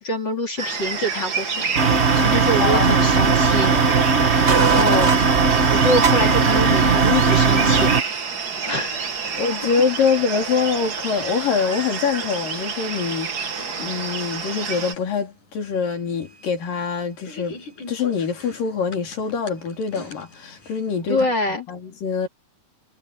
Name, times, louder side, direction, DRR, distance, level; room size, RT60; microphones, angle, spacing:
voice 1, 0.0-5.1 5.7-7.9 8.7-9.4 21.1-21.7, left 1 dB, 35° left, 3.1 m, -26 dB
sound 1, 0.6-14.9, right 6 dB, 45° right, 1.4 m, -29 dB
sound 2, 1.5-21.0, left 2 dB, 65° left, 9.0 m, -42 dB
sound 3, 1.7-8.0, right 5 dB, 80° right, 0.6 m, -17 dB
voice 2, 2.6-2.9 9.4-13.5 13.8-17.6 17.9-21.3 21.7-22.3, left 6 dB, 80° left, 5.6 m, -24 dB
omnidirectional pair, 3.8 m